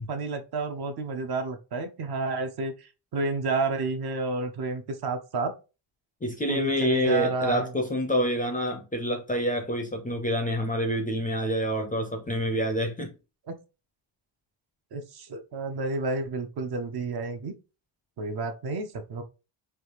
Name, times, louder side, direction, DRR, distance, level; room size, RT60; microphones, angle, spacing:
voice 1, 0.0-5.5 6.5-7.7 13.5-13.6 14.9-17.5 18.2-19.2, right 3 dB, 50° right, 0.6 m, -30 dB
voice 2, 6.2-13.1, equal, 20° left, 0.4 m, -27 dB
3.3 x 2.4 x 2.9 m
cardioid pair, 145°, 49 cm